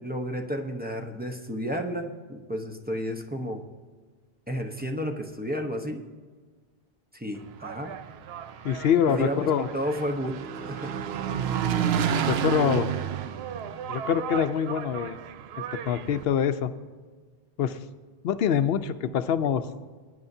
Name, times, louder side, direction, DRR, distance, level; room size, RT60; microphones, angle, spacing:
voice 1, 0.0-3.6 4.5-6.0 7.1-8.0 9.1-10.9, equal, 10° right, 2 dB, 0.7 m, -32 dB
Engine, 7.4-16.2, right 8 dB, 85° right, 0.8 m, -31 dB
voice 2, 8.6-9.7 12.3-12.9 13.9-15.2 15.8-16.7 17.6-17.8 18.2-19.6, left 8 dB, 75° left, 12 dB, 0.8 m, -24 dB
19.5 x 9.5 x 2.7 m, 1.4 s
omnidirectional pair, 1.0 m